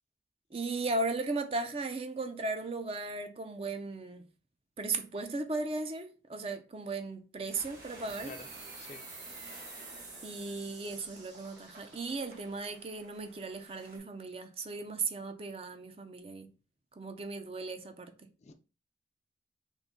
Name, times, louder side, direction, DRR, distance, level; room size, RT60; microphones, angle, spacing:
voice 1, 0.5-4.2 4.8-8.3 10.2-16.5 17.0-18.1, right 3 dB, 30° right, 0.4 m, -36 dB
sound 1, 7.5-14.0, right 1 dB, 45° right, 1.8 m, -54 dB
sound 2, 8.1-13.2, right 3 dB, 75° right, 1.9 m, -50 dB
voice 2, 8.2-8.5 8.8-9.0 18.4-18.5, left 3 dB, 35° left, 0.4 m, -47 dB
3.8 x 3.0 x 3.6 m
head